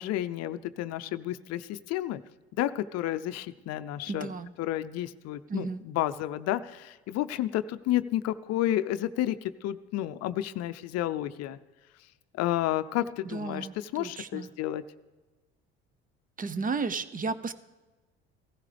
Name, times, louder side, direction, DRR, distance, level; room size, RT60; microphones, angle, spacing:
voice 1, 0.0-2.2 2.6-4.3 4.6-11.6 12.3-13.7 13.9-14.8, left 13 dB, 55° left, 13 dB, 0.6 m, -31 dB
voice 2, 4.1-4.5 5.5-5.8 13.2-14.5 16.4-17.5, right 4 dB, 30° right, 13 dB, 0.7 m, -33 dB
16.0 x 14.0 x 3.4 m, 1.2 s
hypercardioid pair, 70°, 30 cm